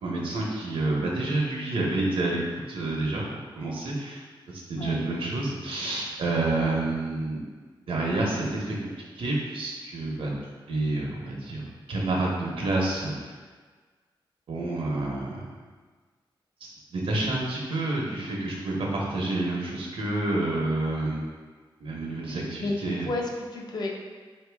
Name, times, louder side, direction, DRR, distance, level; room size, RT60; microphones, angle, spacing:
voice 1, 0.0-3.2 3.5-7.4 7.9-10.3 10.7-11.6 11.9-13.1 14.5-15.5 16.6-21.3 21.8-23.1, right 2 dB, 85° right, -3 dB, 0.9 m, -29 dB
voice 2, 22.2-23.9, left 2 dB, 50° left, 0 dB, 0.6 m, -32 dB
4.4 x 2.8 x 3.4 m, 1.5 s
wide cardioid pair, 155°, 9 cm